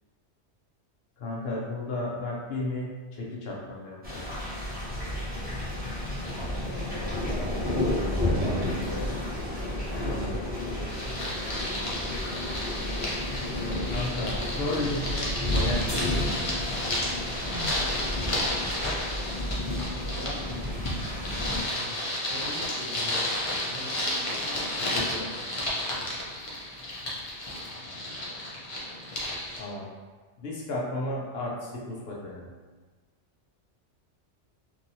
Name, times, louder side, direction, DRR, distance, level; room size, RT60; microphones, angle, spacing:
voice 1, 1.2-4.2 9.9-10.3 13.9-16.4 24.9-25.3 29.6-29.9 30.4-32.5, left 2 dB, 65° left, -3 dB, 0.8 m, -34 dB
sound 1, 4.0-21.6, left 1 dB, 10° right, 0.7 m, -31 dB
voice 2, 6.2-7.9 8.3-9.2 11.1-12.5 17.4-18.1 20.1-21.2 21.7-22.0 22.2-25.8 27.8-28.3, right 1 dB, 90° right, -5 dB, 1.1 m, -43 dB
sound 2, 10.9-29.6, left 1 dB, 40° left, 0.5 m, -32 dB
sound 3, 15.9-21.8, left 1 dB, 15° left, 0.9 m, -46 dB
2.8 x 2.6 x 2.7 m, 1.3 s
omnidirectional pair, 1.2 m